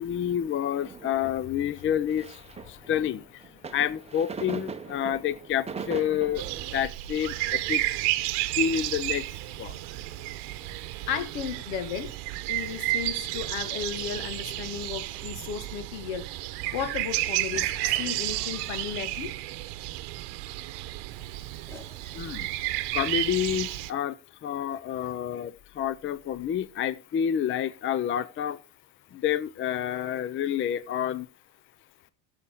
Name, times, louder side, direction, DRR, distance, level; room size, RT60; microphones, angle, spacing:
voice 1, 0.0-7.8 8.6-9.3 9.6-9.8 22.1-22.5 22.9-28.6 29.1-31.3, left 9 dB, 30° left, 0.5 m, -29 dB
sound 1, 0.8-6.7, right 5 dB, 15° right, 0.8 m, -40 dB
sound 2, 6.4-23.9, right 17 dB, 65° right, 0.9 m, -32 dB
voice 2, 11.1-12.1 12.5-16.3 16.7-19.3, left 8 dB, 80° left, 1.6 m, -34 dB
sound 3, 13.6-15.5 16.6-19.7 21.5-23.5, equal, 5° left, 2.7 m, -52 dB
15.5 x 7.1 x 3.5 m
supercardioid pair, 95°, 43 cm